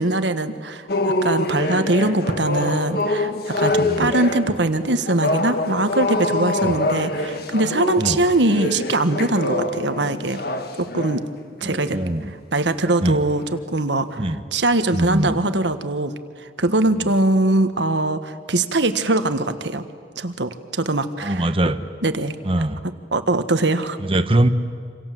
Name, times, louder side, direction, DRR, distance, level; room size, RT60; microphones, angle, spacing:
voice 1, 0.0-10.4 10.8-11.2 11.6-12.0 12.3-19.8 20.2-21.5 22.0-22.3 23.1-24.0, right 2 dB, 75° right, 9 dB, 1.6 m, -22 dB
sound 1, 0.9-11.3 11.8-12.0 12.6-12.9 13.3-13.6, left 2 dB, 55° left, 1.8 m, -25 dB
voice 2, 3.8-4.1 6.6-6.8 8.0-8.2 11.6-12.3 13.0-13.2 14.2-14.4 14.9-15.4 21.2-21.9 22.4-22.8 24.0-24.5, right 1 dB, 30° right, 9 dB, 1.2 m, -22 dB
27.0 x 27.0 x 7.7 m, 2.1 s
head